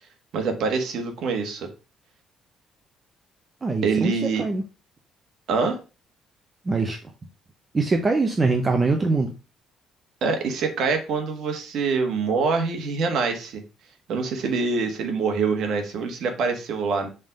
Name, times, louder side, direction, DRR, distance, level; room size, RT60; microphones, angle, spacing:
voice 1, 0.3-1.7 3.8-4.5 5.5-5.8 10.2-13.6 14.1-17.1, right 4 dB, 60° right, 4 dB, 1.4 m, -25 dB
voice 2, 3.6-4.6 6.6-7.0 7.7-9.3, right 3 dB, 20° right, 4 dB, 0.6 m, -23 dB
5.4 x 3.7 x 5.2 m, 0.32 s
cardioid pair, 175°, 0 cm